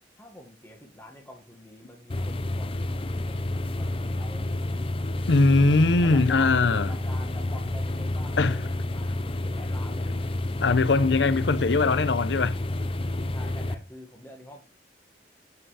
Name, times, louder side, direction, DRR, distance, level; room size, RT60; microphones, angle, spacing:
voice 1, 0.1-4.7 6.0-10.4 13.3-14.6, left 1 dB, 15° left, 1.5 m, -47 dB
sound 1, 2.1-13.7, left 1 dB, 30° left, 0.6 m, -29 dB
voice 2, 5.3-6.9 8.4-8.6 10.6-12.6, left 3 dB, 85° left, 0.7 m, -21 dB
8.0 x 5.4 x 4.8 m
head